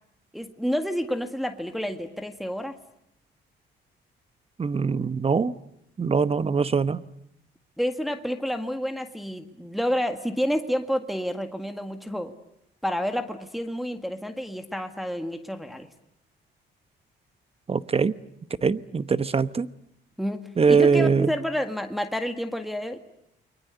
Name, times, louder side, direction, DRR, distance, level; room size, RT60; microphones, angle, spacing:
voice 1, 0.3-2.8 7.8-12.3 12.8-15.9 20.2-23.0, equal, ahead, 1.8 m, -29 dB
voice 2, 4.6-5.5 6.0-7.0 17.7-18.1 18.6-19.7 20.6-21.3, right 5 dB, 30° right, 1.1 m, -22 dB
29.5 x 23.0 x 8.2 m
cardioid pair, 90°, 20 cm